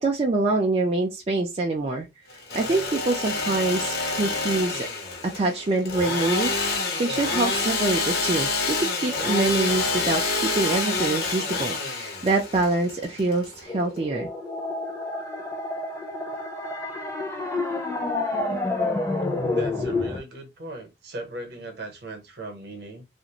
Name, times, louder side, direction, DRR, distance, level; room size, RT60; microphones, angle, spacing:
voice 1, 0.0-2.1 2.5-4.9 5.2-8.5 8.8-14.3, right 2 dB, 35° right, 0.4 m, -25 dB
Engine / Sawing, 2.3-14.0, left 3 dB, 60° left, 0.7 m, -27 dB
sound 1, 13.7-20.2, left 2 dB, 15° left, 0.6 m, -29 dB
voice 2, 19.5-23.0, right 1 dB, 65° right, 0.8 m, -37 dB
2.5 x 2.0 x 2.8 m
head